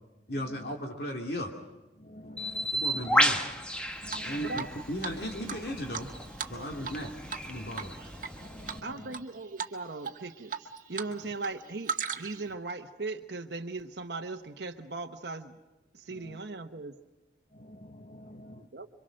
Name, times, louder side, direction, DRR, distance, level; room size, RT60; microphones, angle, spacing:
voice 1, 0.3-1.5 2.2-2.3 2.7-3.4 4.2-6.1 6.5-7.1 7.5-7.9, equal, 60° left, 1 dB, 2.6 m, -36 dB
voice 2, 2.0-3.2 4.0-4.6 6.7-6.8 7.6-7.9 8.4-9.1 16.2-16.4 17.5-18.7, left 1 dB, 45° left, 8 dB, 0.9 m, -49 dB
Bird, 2.4-8.8, equal, 5° left, 1.2 m, -32 dB
Drip, 4.1-4.7 5.0-5.1 5.5-7.0 7.3-7.5 7.8-8.3 8.7-9.2 9.6-9.8 10.0-11.1 11.4-12.5, right 6 dB, 45° right, 1.4 m, -36 dB
voice 3, 4.4-4.7 6.5-6.7 8.8-15.6 15.9-17.0 18.6-18.9, right 3 dB, 65° right, 3 dB, 1.0 m, -39 dB
27.0 x 24.5 x 6.4 m, 1.0 s
head